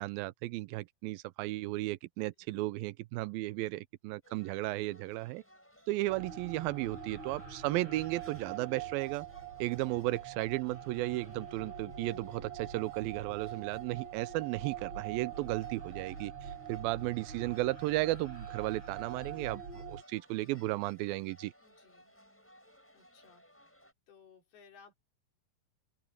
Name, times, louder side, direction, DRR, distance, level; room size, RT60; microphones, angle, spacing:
voice 1, 0.0-5.4 5.9-9.3 9.6-16.3 16.7-21.5, right 18 dB, 80° right, 2.4 m, -34 dB
sound 1, 4.2-23.9, equal, 5° left, 7.6 m, -61 dB
sound 2, 6.1-20.0, right 8 dB, 50° right, 6.1 m, -44 dB
voice 2, 21.6-22.1 22.9-23.8 24.1-24.9, left 6 dB, 85° left, 5.8 m, -60 dB
open air
omnidirectional pair, 4.4 m